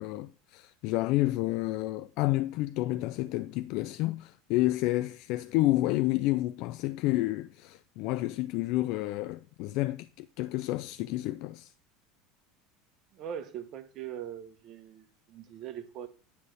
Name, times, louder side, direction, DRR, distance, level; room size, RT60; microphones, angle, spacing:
voice 1, 0.0-11.7, left 17 dB, 60° left, 0.3 m, -30 dB
voice 2, 13.1-16.1, right 9 dB, 50° right, 1.1 m, -41 dB
9.8 x 3.3 x 6.2 m
supercardioid pair, 110°, 0 cm